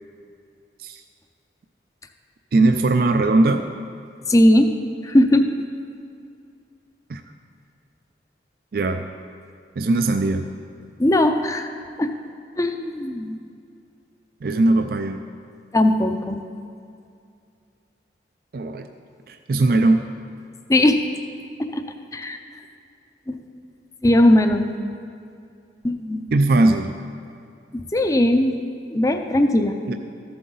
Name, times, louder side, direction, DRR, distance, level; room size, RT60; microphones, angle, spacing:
voice 1, 2.5-3.7 7.1-7.2 8.7-9.1 9.8-10.5 14.4-15.2 18.5-18.9 19.3-20.1 26.3-26.9 29.9-30.0, right 2 dB, 55° right, 7 dB, 0.4 m, -19 dB
voice 2, 4.3-4.7 5.0-5.6 11.0-11.7 12.0-12.1 12.6-13.4 15.7-16.4 20.7-21.0 21.6-21.8 22.1-22.4 23.3-23.4 24.0-24.7 25.8-26.2 27.9-28.6 28.9-29.8, left 1 dB, 20° left, 6 dB, 0.5 m, -18 dB
14.0 x 7.8 x 3.9 m, 2.4 s
head